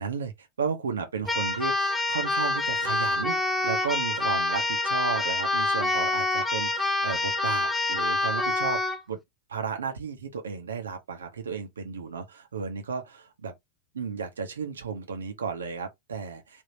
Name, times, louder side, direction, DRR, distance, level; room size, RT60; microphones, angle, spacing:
voice 1, 0.0-8.8 9.1-9.2 9.5-13.5 13.9-16.6, right 5 dB, 70° right, 0.9 m, -33 dB
Keyboard (musical), 1.3-9.0, left 2 dB, 5° left, 0.7 m, -26 dB
3.5 x 2.8 x 2.8 m
figure-of-eight pair, 90°, 0 cm